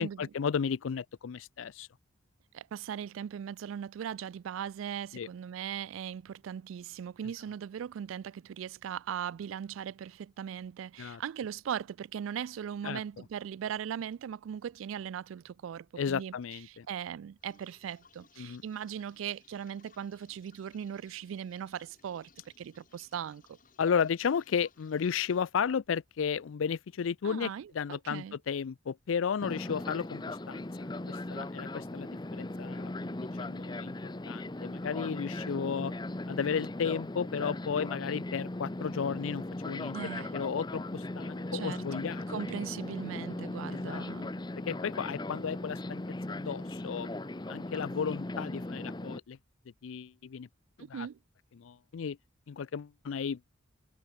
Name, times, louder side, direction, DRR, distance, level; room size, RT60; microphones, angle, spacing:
voice 1, 0.0-1.9 5.1-5.3 11.0-11.2 12.8-13.0 16.0-16.9 18.4-18.6 23.8-33.9 34.3-35.9 36.3-40.0 40.3-42.2 43.7-44.0 44.7-46.0 46.3-47.1 47.5-49.4 49.8-50.5 50.9-51.1 51.6-52.2 52.5-53.6, left 6 dB, 85° left, 0.4 m, -34 dB
voice 2, 2.5-16.3 16.7-22.3 22.6-23.6 27.2-28.4 31.4-31.5 39.9-40.4 41.5-41.8 42.3-44.3 50.8-51.2, right 8 dB, 85° right, 0.3 m, -39 dB
sound 1, 17.4-25.4, left 5 dB, 40° left, 5.1 m, -64 dB
Fixed-wing aircraft airplane, 29.4-49.2, left 2 dB, 20° left, 0.6 m, -38 dB
head